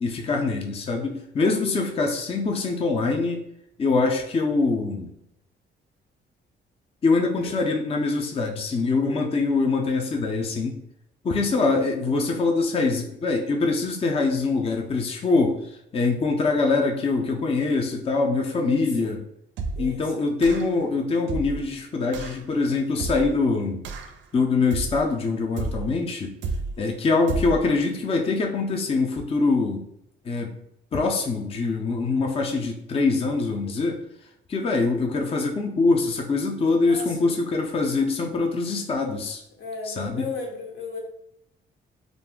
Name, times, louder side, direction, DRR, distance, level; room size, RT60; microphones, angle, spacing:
voice 1, 0.0-3.4 3.8-5.1 7.0-10.8 11.2-15.6 15.9-19.2 19.8-23.8 24.3-26.3 26.8-29.8 30.2-30.5 30.9-34.0 34.5-39.4 39.8-40.3, left 3 dB, 30° left, 2 dB, 0.4 m, -24 dB
voice 2, 18.5-19.1 19.7-20.2 33.6-33.7 36.8-37.3 39.6-41.0, left 3 dB, 80° left, -1 dB, 0.9 m, -36 dB
sound 1, 19.6-20.0 20.4-20.8 21.3-21.7 22.1-22.4 23.0-23.4 23.8-24.2 24.7-25.1 25.6-26.0 26.4-26.8 27.3-27.7, right 3 dB, 70° right, 0.4 m, -31 dB
2.4 x 2.0 x 3.5 m, 0.76 s
cardioid pair, 90°, 20 cm